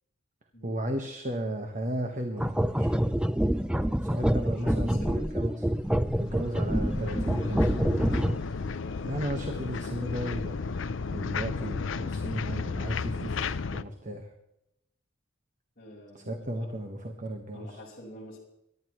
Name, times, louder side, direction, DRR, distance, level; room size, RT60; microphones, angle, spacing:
voice 1, 0.6-3.0 4.0-5.7 6.2-8.3 9.0-14.3 16.1-17.8, right 1 dB, 35° right, 3 dB, 1.4 m, -35 dB
sound 1, 2.4-8.6, equal, 5° right, 0.5 m, -27 dB
voice 2, 4.2-5.3 8.8-9.0 13.3-13.5 15.8-16.7 17.5-18.4, left 1 dB, 40° left, -4 dB, 5.2 m, -46 dB
sound 2, 5.8-13.8, left 4 dB, 65° left, 0.6 m, -34 dB
23.5 x 12.0 x 3.1 m, 0.82 s
head